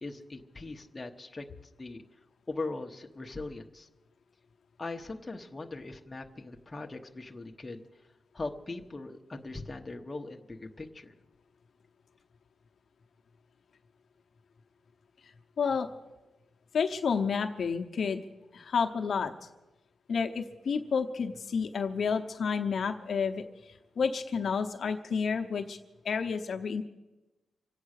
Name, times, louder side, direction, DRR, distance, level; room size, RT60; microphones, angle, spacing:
voice 1, 0.0-1.5 1.8-2.0 2.5-3.9 4.8-7.8 8.3-11.1, left 3 dB, 20° left, 2 dB, 1.0 m, -40 dB
voice 2, 15.6-15.9 16.7-18.2 18.5-19.3 20.1-25.8 26.0-26.8, left 6 dB, 55° left, 5 dB, 0.9 m, -30 dB
25.5 x 8.6 x 6.6 m, 1.1 s
wide cardioid pair, 155°, 0 cm